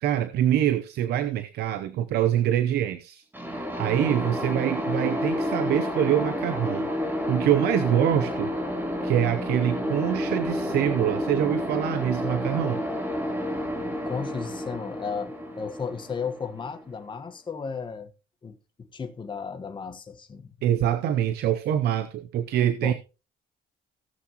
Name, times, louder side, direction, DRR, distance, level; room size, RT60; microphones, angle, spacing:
voice 1, 0.0-3.2 3.5-6.9 7.3-8.5 9.0-12.8 20.6-22.9, right 11 dB, 75° right, 0.8 m, -25 dB
sound 1, 3.3-17.0, equal, 10° right, 3.4 m, -30 dB
voice 2, 14.0-18.1 18.4-18.6 18.9-20.5 22.8-22.9, left 5 dB, 30° left, 1.4 m, -34 dB
17.0 x 7.0 x 3.0 m
cardioid pair, 110°, 17 cm